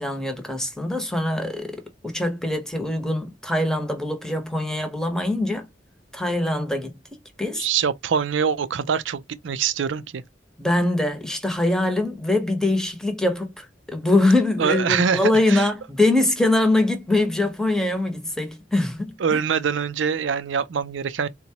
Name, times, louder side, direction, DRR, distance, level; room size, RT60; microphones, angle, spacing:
voice 1, 0.0-5.7 6.1-7.7 10.6-19.4, left 2 dB, 5° left, 0.9 m, -23 dB
voice 2, 7.6-10.2 14.6-15.7 19.2-21.3, right 6 dB, 75° right, 0.4 m, -24 dB
4.0 x 2.2 x 2.8 m
head